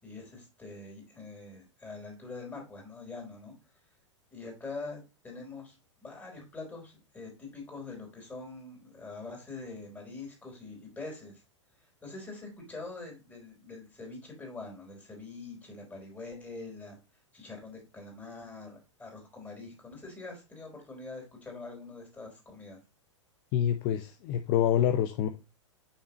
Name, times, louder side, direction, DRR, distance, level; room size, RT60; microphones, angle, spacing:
voice 1, 0.0-3.5 4.3-11.4 12.0-17.0 17.3-22.8, left 3 dB, 10° left, 3.7 m, -44 dB
voice 2, 23.5-25.3, left 10 dB, 40° left, 0.7 m, -26 dB
6.5 x 5.7 x 2.9 m
figure-of-eight pair, 100°, 16 cm